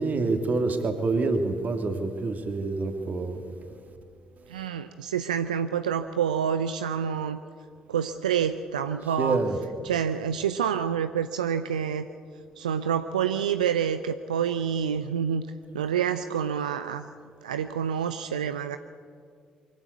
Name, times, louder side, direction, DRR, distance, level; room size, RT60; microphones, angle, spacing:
voice 1, 0.0-3.4 9.2-9.6, right 3 dB, 40° right, 2.8 m, -27 dB
voice 2, 4.5-7.4 7.9-9.4 9.8-12.1 12.6-15.5 15.7-17.1 17.4-18.8, right 8 dB, 80° right, 0.5 m, -27 dB
23.5 x 15.5 x 8.2 m
figure-of-eight pair, 45°, 4 cm